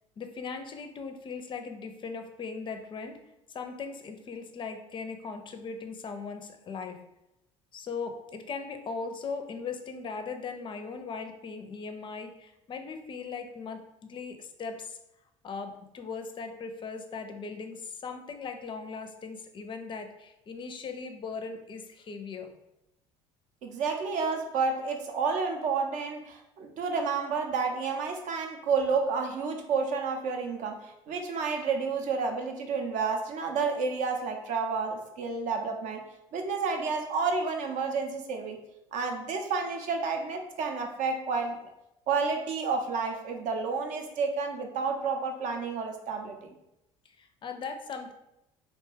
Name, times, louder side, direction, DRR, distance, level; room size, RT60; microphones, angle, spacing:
voice 1, 0.2-7.1 7.7-15.0 15.4-22.6 47.1-48.1, left 5 dB, 35° left, 6 dB, 0.4 m, -39 dB
voice 2, 23.6-36.0 36.3-38.6 38.9-41.7 42.1-46.5, right 4 dB, 55° right, 4 dB, 0.5 m, -30 dB
2.6 x 2.2 x 3.3 m, 0.88 s
hypercardioid pair, 65°, 15 cm